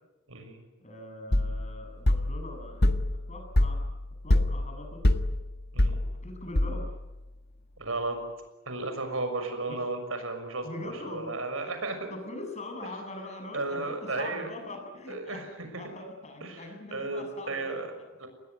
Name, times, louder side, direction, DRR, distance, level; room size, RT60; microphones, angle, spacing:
voice 1, 0.3-0.6 5.7-6.0 7.8-8.2 8.7-12.1 13.5-14.5 15.1-15.4 15.8-15.9 16.4-17.9 18.2-18.3, right 3 dB, 80° right, 7 dB, 6.5 m, -34 dB
voice 2, 0.8-3.9 4.2-5.0 6.2-7.0 9.7-9.8 10.6-15.4 15.7-18.3, left 2 dB, 35° left, 3 dB, 7.7 m, -42 dB
sound 1, 1.3-7.1, left 1 dB, 50° left, 1.7 m, -26 dB
29.0 x 21.0 x 9.6 m, 1.1 s
head